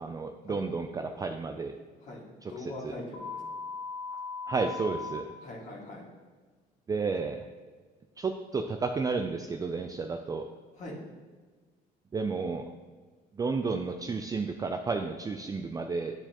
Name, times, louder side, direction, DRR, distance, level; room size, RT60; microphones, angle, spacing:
voice 1, 0.0-1.7 2.4-3.0 4.5-5.2 6.9-7.5 8.2-10.4 12.1-12.6 13.3-16.1, right 4 dB, 20° right, 5 dB, 0.4 m, -32 dB
voice 2, 2.0-3.4 5.4-6.1 10.8-11.0, left 2 dB, 45° left, -4 dB, 1.9 m, -42 dB
sound 1, 3.1-5.1, left 4 dB, 80° left, 1.7 m, -38 dB
9.6 x 4.6 x 2.9 m, 1.4 s
cardioid pair, 110°, 17 cm